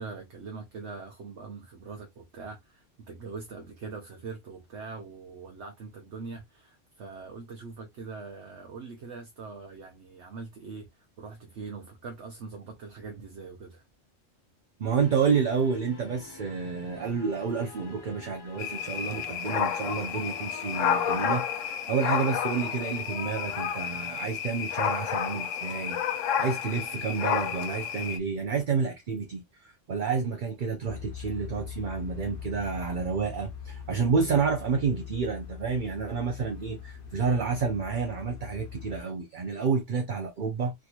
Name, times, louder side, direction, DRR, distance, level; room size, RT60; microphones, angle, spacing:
voice 1, 0.0-10.9 11.2-13.8, right 4 dB, 65° right, 1.0 m, -42 dB
voice 2, 14.8-40.7, right 5 dB, 50° right, 0.7 m, -29 dB
sound 1, 14.9-21.4, left 2 dB, 25° left, 0.6 m, -48 dB
sound 2, 18.6-28.2, left 8 dB, 85° left, 1.0 m, -30 dB
sound 3, 30.8-39.0, left 8 dB, 45° left, 1.2 m, -42 dB
3.5 x 2.9 x 2.3 m
omnidirectional pair, 1.3 m